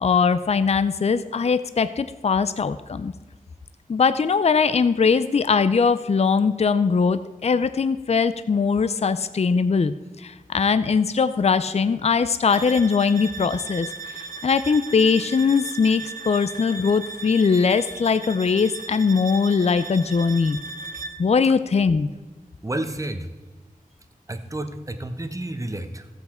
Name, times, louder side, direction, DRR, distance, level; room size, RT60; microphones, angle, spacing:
voice 1, 0.0-3.1 3.9-20.6 21.2-22.1, left 5 dB, 45° left, 13 dB, 0.4 m, -21 dB
sound 1, 12.5-21.3, right 3 dB, 70° right, 0.7 m, -37 dB
voice 2, 22.6-23.3 24.3-26.1, right 1 dB, 20° right, 9 dB, 0.8 m, -30 dB
14.0 x 8.1 x 4.3 m, 1.2 s
wide cardioid pair, 80°, 15 cm